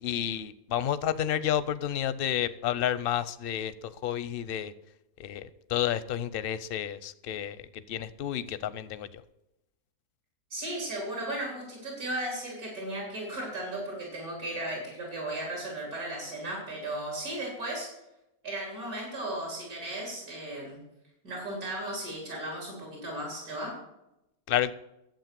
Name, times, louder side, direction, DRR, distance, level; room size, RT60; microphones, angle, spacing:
voice 1, 0.0-3.7 4.0-4.7 5.2-7.6 7.9-9.1 24.5-24.7, left 10 dB, 60° left, 15 dB, 0.6 m, -30 dB
voice 2, 10.5-17.9 18.4-20.8 21.2-23.7, right 1 dB, 85° right, -2 dB, 4.0 m, -35 dB
11.5 x 7.7 x 7.4 m, 0.89 s
omnidirectional pair, 1.6 m